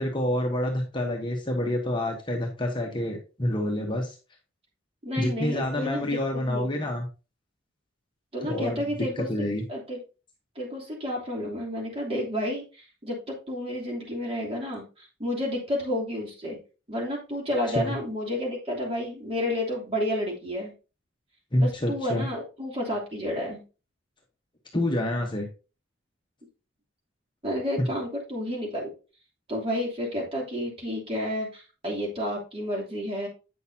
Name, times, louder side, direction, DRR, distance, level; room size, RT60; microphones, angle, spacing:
voice 1, 0.0-4.2 5.2-7.1 8.4-9.6 17.7-17.9 21.5-22.3 24.7-25.5 27.8-27.9, left 1 dB, 25° left, 1 dB, 1.1 m, -27 dB
voice 2, 5.0-7.0 8.3-9.3 9.7-10.0 10.5-16.6 16.9-20.7 21.6-23.6 27.4-28.9 29.5-33.3, left 1 dB, 30° right, -2 dB, 3.0 m, -31 dB
8.5 x 6.4 x 2.8 m, 0.32 s
head